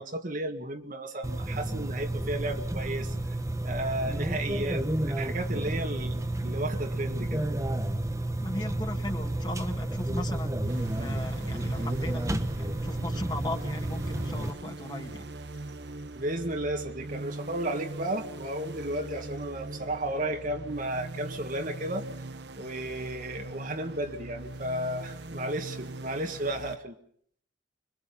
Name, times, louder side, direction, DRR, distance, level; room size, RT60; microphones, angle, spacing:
voice 1, 0.0-3.2 3.6-7.4 16.1-22.1 22.6-27.0, right 1 dB, 45° right, 5 dB, 1.8 m, -33 dB
sound 1, 1.2-14.5, right 1 dB, 15° right, 1.1 m, -31 dB
voice 2, 8.4-10.5 11.0-15.2, left 1 dB, 25° left, 4 dB, 2.1 m, -37 dB
sound 2, 10.7-26.8, right 2 dB, 60° right, 1.0 m, -41 dB
25.5 x 24.0 x 5.5 m, 0.62 s
head